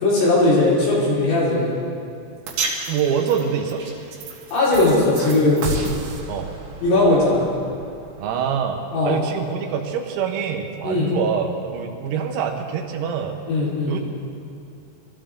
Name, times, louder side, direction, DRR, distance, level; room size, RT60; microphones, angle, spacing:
voice 1, 0.0-1.7 4.5-5.8 6.8-7.5 8.9-9.2 10.8-11.1 13.5-14.0, left 2 dB, 65° left, -8 dB, 7.2 m, -18 dB
sound 1, 2.5-8.8, right 3 dB, 65° right, 4.1 m, -32 dB
voice 2, 2.9-3.8 6.3-6.5 8.2-13.4 13.9-14.0, right 7 dB, 85° right, 3 dB, 4.1 m, -25 dB
24.0 x 15.0 x 3.9 m, 2.5 s
omnidirectional pair, 6.0 m